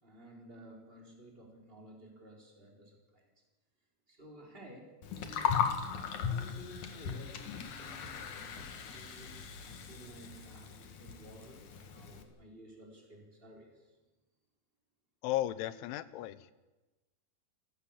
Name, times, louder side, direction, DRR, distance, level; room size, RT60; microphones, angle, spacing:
voice 1, 0.0-3.3 4.1-5.9 6.2-13.9, equal, 10° right, 0 dB, 4.0 m, -54 dB
Gurgling, 5.0-12.2, left 7 dB, 55° left, 2.5 m, -38 dB
voice 2, 15.2-16.5, left 14 dB, 85° left, 15 dB, 3.3 m, -35 dB
28.0 x 15.5 x 7.4 m, 1.1 s
omnidirectional pair, 5.4 m